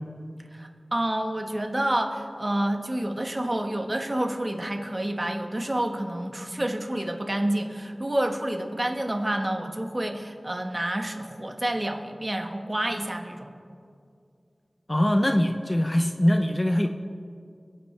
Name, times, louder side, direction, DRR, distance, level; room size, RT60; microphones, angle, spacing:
voice 1, 0.5-13.5, right 1 dB, 25° right, 4 dB, 1.3 m, -29 dB
voice 2, 14.9-16.9, left 1 dB, 20° left, 5 dB, 0.6 m, -22 dB
26.0 x 8.6 x 3.3 m, 2.3 s
wide cardioid pair, 65°, 0 cm